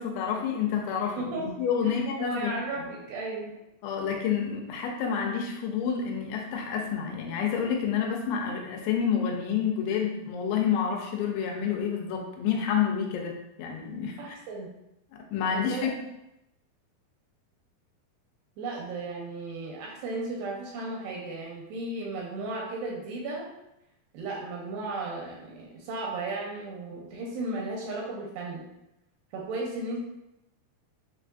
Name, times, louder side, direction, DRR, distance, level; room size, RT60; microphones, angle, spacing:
voice 1, 0.0-2.6 3.8-14.4 15.3-15.9, left 7 dB, 80° left, 1 dB, 2.9 m, -29 dB
voice 2, 1.2-1.5 1.8-3.5 14.2-14.7 15.4-15.9 18.6-23.5 24.1-28.7 29.3-30.0, right 2 dB, 80° right, -2 dB, 2.6 m, -35 dB
6.6 x 2.4 x 2.5 m, 0.88 s
omnidirectional pair, 5.0 m